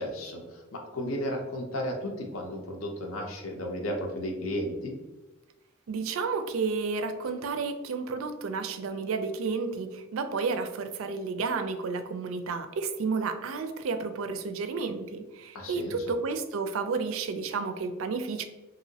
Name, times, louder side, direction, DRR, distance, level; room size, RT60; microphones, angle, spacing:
voice 1, 0.0-4.9 15.5-15.9, equal, 80° left, 2 dB, 0.6 m, -34 dB
voice 2, 5.9-18.4, right 4 dB, 80° right, 8 dB, 0.4 m, -31 dB
3.0 x 2.7 x 2.7 m, 1.1 s
head